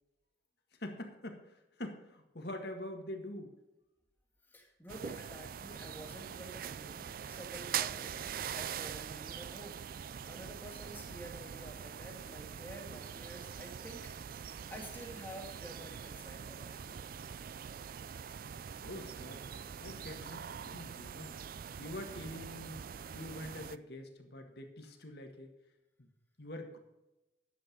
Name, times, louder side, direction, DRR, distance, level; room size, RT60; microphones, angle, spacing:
voice 1, 0.8-3.5 18.8-21.3 21.8-22.8 23.1-25.5 26.0-26.1 26.4-26.8, left 1 dB, 55° left, 4 dB, 1.8 m, -45 dB
voice 2, 4.5-9.8 10.3-17.1, right 1 dB, 10° left, 0 dB, 1.8 m, -50 dB
sound 1, 4.9-23.8, right 8 dB, 45° right, 0.3 m, -43 dB
11.0 x 7.9 x 5.3 m, 0.95 s
head